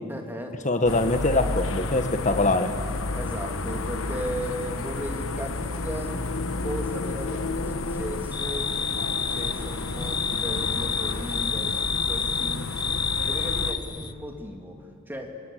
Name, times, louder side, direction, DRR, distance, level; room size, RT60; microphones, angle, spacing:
voice 1, 0.1-0.7 3.1-6.2 6.6-8.7 9.3-12.8 13.2-15.4, equal, 10° right, 2 dB, 2.5 m, -36 dB
voice 2, 0.6-2.7, left 2 dB, 35° left, 8 dB, 1.5 m, -23 dB
sound 1, 0.9-13.7, left 2 dB, 75° left, 1.3 m, -31 dB
sound 2, 8.3-14.1, left 6 dB, 20° left, 0.7 m, -29 dB
29.5 x 21.5 x 8.5 m, 2.4 s
head